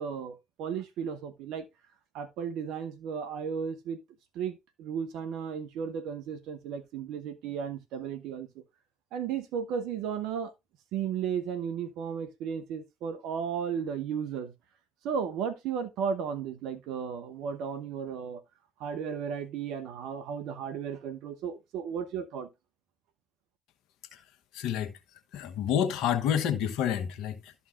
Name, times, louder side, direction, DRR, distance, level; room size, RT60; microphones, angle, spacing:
voice 1, 0.0-1.7 2.1-4.0 4.3-8.6 9.1-10.5 10.9-14.5 15.0-18.4 18.8-22.5, right 7 dB, 70° right, 1.1 m, -34 dB
voice 2, 24.5-25.0 25.3-27.5, left 9 dB, 70° left, 1.0 m, -29 dB
12.5 x 5.6 x 2.5 m
hypercardioid pair, 55°, 0 cm